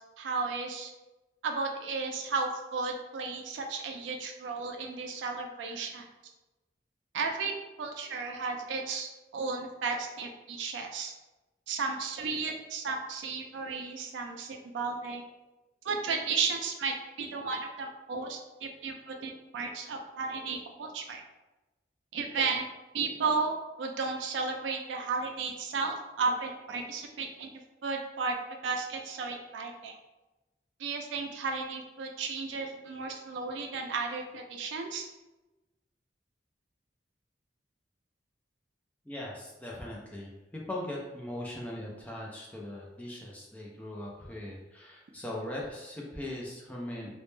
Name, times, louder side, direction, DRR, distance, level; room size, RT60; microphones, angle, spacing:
voice 1, 0.2-0.9 1.4-6.0 7.1-7.5 7.8-11.1 11.7-15.2 15.8-21.2 22.1-22.6 22.9-27.5 27.8-28.4 28.6-29.9 30.8-35.1, right 4 dB, 85° right, 3 dB, 0.3 m, -34 dB
voice 2, 39.1-47.1, left 1 dB, 10° left, -3 dB, 0.3 m, -40 dB
2.1 x 2.0 x 3.0 m, 1.1 s
head